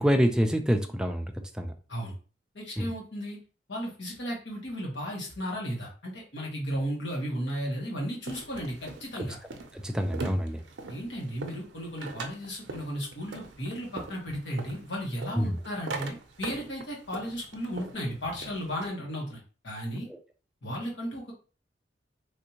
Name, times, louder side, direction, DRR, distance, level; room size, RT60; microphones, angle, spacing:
voice 1, 0.0-1.7 2.8-2.9 9.7-10.6 15.4-15.6, equal, 5° right, 5 dB, 0.4 m, -26 dB
voice 2, 2.5-3.4 3.7-9.4 10.9-20.1 20.6-21.3, equal, 80° left, -2 dB, 1.4 m, -35 dB
sound 1, 8.3-18.9, right 3 dB, 85° right, 0.6 m, -42 dB
3.4 x 2.7 x 2.9 m, 0.36 s
head